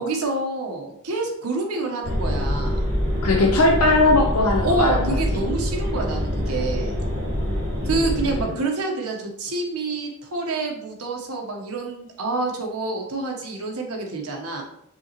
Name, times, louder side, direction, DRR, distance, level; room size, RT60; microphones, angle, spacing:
voice 1, 0.0-2.8 4.6-6.9 7.9-14.6, right 3 dB, 80° right, 1 dB, 1.0 m, -27 dB
sound 1, 2.0-8.4, equal, 60° right, 1.7 m, -25 dB
voice 2, 3.2-5.4 7.8-8.6, left 2 dB, 75° left, -1 dB, 0.7 m, -20 dB
5.6 x 2.9 x 2.9 m, 0.74 s
head